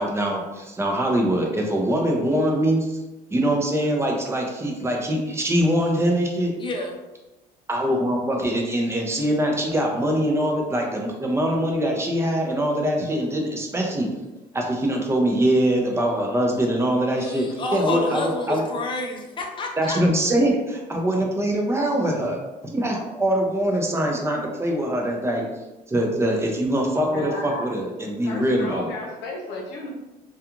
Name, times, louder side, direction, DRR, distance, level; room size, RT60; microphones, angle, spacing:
voice 1, 0.0-3.0 3.3-6.5 7.7-14.1 14.5-18.6 19.8-22.4 22.6-25.5 25.9-28.9, right 1 dB, 15° right, 1 dB, 0.5 m, -23 dB
voice 2, 6.6-7.0 17.2-20.0, left 2 dB, 30° left, 1 dB, 0.5 m, -29 dB
voice 3, 27.1-27.7 28.2-29.9, left 2 dB, 85° left, 0 dB, 0.6 m, -33 dB
2.4 x 2.3 x 2.9 m, 1.0 s
cardioid pair, 110°, 17 cm